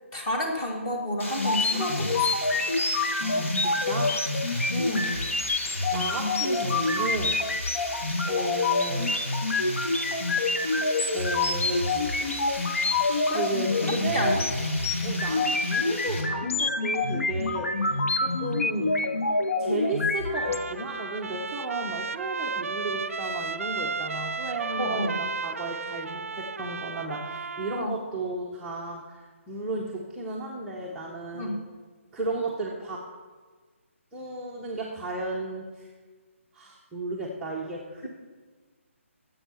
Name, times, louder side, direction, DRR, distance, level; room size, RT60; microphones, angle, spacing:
voice 1, 0.1-2.3 4.7-5.2 13.3-13.4 13.8-14.4 24.8-25.2 27.7-27.9 31.3-31.6, left 1 dB, 20° left, 0 dB, 1.3 m, -30 dB
Water, 1.2-16.2, left 1 dB, 70° left, 3.0 m, -37 dB
Blips and Bloops, 1.4-20.6, left 3 dB, 90° left, 0.9 m, -27 dB
voice 2, 3.2-4.1 5.9-7.3 8.2-9.2 11.1-14.5 15.0-19.0 19.6-31.6 32.1-33.0 34.1-35.9 36.5-38.1, right 2 dB, 5° right, -5 dB, 0.5 m, -34 dB
Trumpet, 20.2-27.9, right 5 dB, 85° right, 0.4 m, -34 dB
9.9 x 7.6 x 5.6 m, 1.4 s
hypercardioid pair, 170°, 7 cm